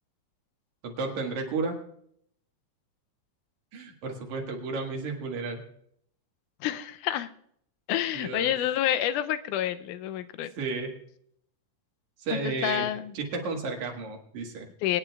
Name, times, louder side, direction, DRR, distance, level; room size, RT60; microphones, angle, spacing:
voice 1, 0.8-1.8 3.7-5.6 8.1-8.5 10.6-10.9 12.2-12.9 13.1-14.7, right 4 dB, 70° right, 2 dB, 3.0 m, -32 dB
voice 2, 6.6-7.3 7.9-10.5 12.3-13.1 14.8-15.0, left 12 dB, 90° left, 12 dB, 2.1 m, -28 dB
23.5 x 10.0 x 2.3 m, 0.69 s
omnidirectional pair, 3.5 m